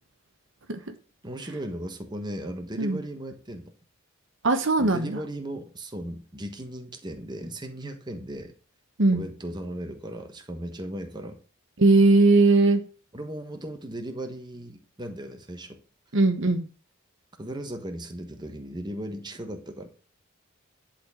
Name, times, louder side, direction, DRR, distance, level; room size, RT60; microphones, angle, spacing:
voice 1, 1.2-3.7 4.8-8.5 9.1-11.4 13.1-15.8 17.4-19.9, right 1 dB, 20° right, 5 dB, 1.3 m, -37 dB
voice 2, 4.4-5.2 9.0-9.2 11.8-12.8 16.1-16.7, right 2 dB, 60° right, 7 dB, 1.1 m, -19 dB
11.0 x 4.4 x 7.2 m, 0.38 s
head